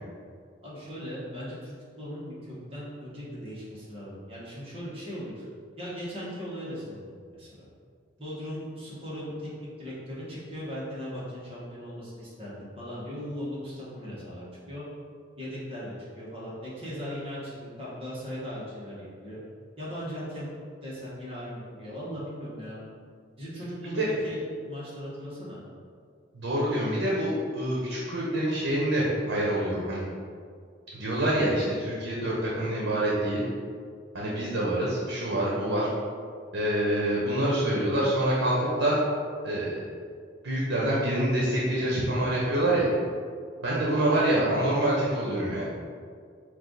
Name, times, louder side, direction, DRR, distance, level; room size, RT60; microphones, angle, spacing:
voice 1, 0.6-5.5 5.8-7.7 8.2-14.8 15.4-19.4 19.8-20.5 20.8-22.8 23.4-25.6 43.9-44.1, equal, 30° right, -9 dB, 1.2 m, -38 dB
voice 2, 26.3-30.0 30.9-33.4 34.1-35.9 36.5-39.0 39.4-39.8 40.4-42.9 43.6-45.7, right 1 dB, 85° right, -5 dB, 0.8 m, -26 dB
4.5 x 2.4 x 3.8 m, 2.1 s
head